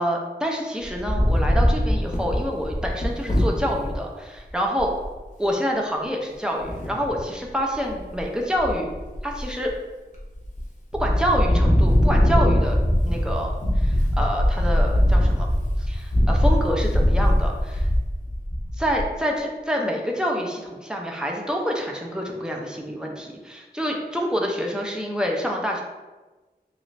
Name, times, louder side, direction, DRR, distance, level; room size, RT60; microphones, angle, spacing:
voice 1, 0.0-4.9 5.4-8.9 9.2-9.7 10.9-15.5 15.8-17.9 18.8-25.8, equal, 5° right, -1 dB, 0.6 m, -27 dB
Wind, 0.8-3.9 4.5-4.6 4.8-5.1 6.6-7.2 7.7-8.2 8.5-9.7 10.2-10.6 10.9-19.1, equal, 45° left, 0.7 m, -21 dB
3.0 x 2.5 x 3.1 m, 1.2 s
wide cardioid pair, 40°, 17 cm